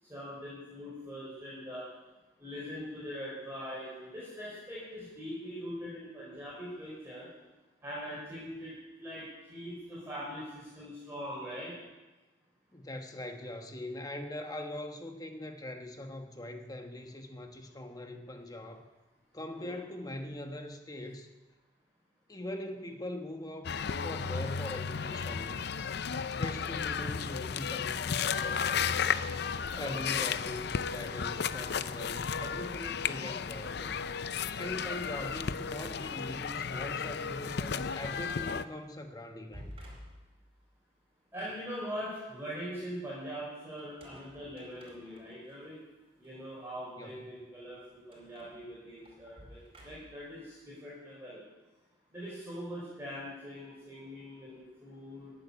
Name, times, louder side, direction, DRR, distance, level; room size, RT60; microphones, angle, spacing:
voice 1, 0.0-1.8 2.4-7.3 7.8-11.7 19.5-19.8 29.7-30.1 41.3-45.8 46.2-51.4 52.1-55.3, equal, 15° right, -8 dB, 4.9 m, -42 dB
voice 2, 12.7-18.9 19.3-21.3 22.3-23.7 24.0-25.7 26.3-29.2 29.7-34.1 34.6-39.7 47.0-47.2, left 1 dB, 20° left, 5 dB, 1.2 m, -42 dB
sound 1, 23.6-38.6, left 6 dB, 65° left, 0.6 m, -34 dB
sound 2, 34.4-36.5 36.9-37.4 37.8-37.9 38.3-38.7 39.3-40.6 43.8-45.6 46.2-46.3 48.1-50.3, equal, 30° right, 4.7 m, -53 dB
15.5 x 8.5 x 9.9 m, 1.1 s
head